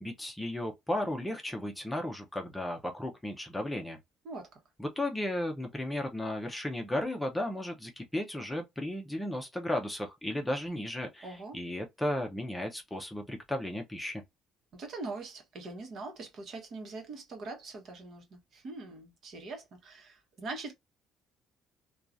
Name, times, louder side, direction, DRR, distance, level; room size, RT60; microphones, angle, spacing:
voice 1, 0.0-4.0 4.8-14.2, left 1 dB, 10° left, 0.6 m, -34 dB
voice 2, 11.2-11.6 14.7-20.7, right 3 dB, 50° right, 1.0 m, -42 dB
2.9 x 2.3 x 2.4 m
cardioid pair, 115°, 0 cm